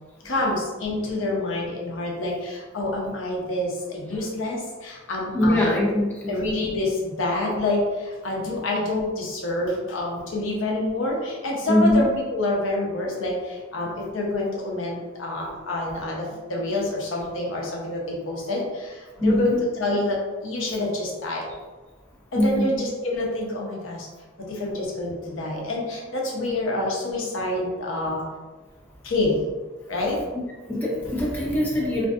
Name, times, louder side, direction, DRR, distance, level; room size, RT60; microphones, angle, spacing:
voice 1, 0.2-5.8 6.3-21.5 22.3-24.1 24.4-28.2 29.0-29.4 29.9-30.2, left 2 dB, 70° left, -2 dB, 0.6 m, -27 dB
voice 2, 5.3-6.3 11.7-12.1 19.2-19.6 22.3-22.7 30.7-32.1, left 1 dB, 10° left, -5 dB, 0.4 m, -22 dB
2.5 x 2.5 x 2.3 m, 1.2 s
head